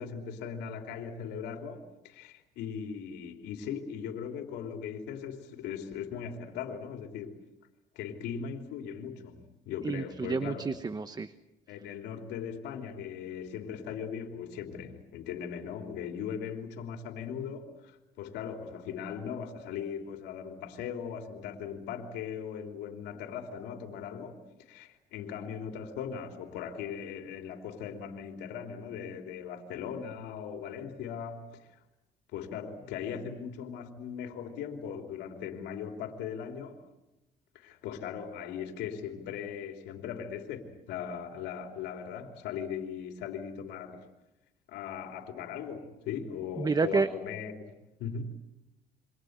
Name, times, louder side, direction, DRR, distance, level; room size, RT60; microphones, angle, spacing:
voice 1, 0.0-7.4 7.9-10.7 11.7-24.4 24.7-31.8 32.3-36.9 37.5-44.1 44.7-48.3, left 7 dB, 90° left, 3.3 m, -39 dB
voice 2, 9.8-11.3 46.6-47.1, right 4 dB, 25° right, 1.1 m, -29 dB
28.5 x 25.0 x 8.1 m
cardioid pair, 110°, 17 cm